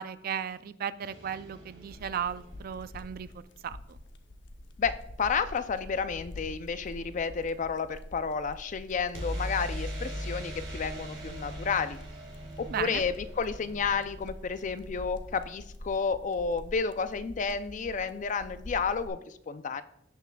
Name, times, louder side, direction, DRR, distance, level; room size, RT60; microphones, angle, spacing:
voice 1, 0.0-3.3 3.6-3.8 12.7-13.0, right 8 dB, 50° right, 15 dB, 0.3 m, -35 dB
sound 1, 1.0-3.0 9.1-14.9, equal, 75° right, 2.1 m, -40 dB
sound 2, 1.9-19.1, left 1 dB, 70° left, 0.7 m, -46 dB
voice 2, 4.8-12.0 12.6-19.8, left 5 dB, 40° left, 12 dB, 0.4 m, -31 dB
16.5 x 5.7 x 2.3 m, 0.76 s
head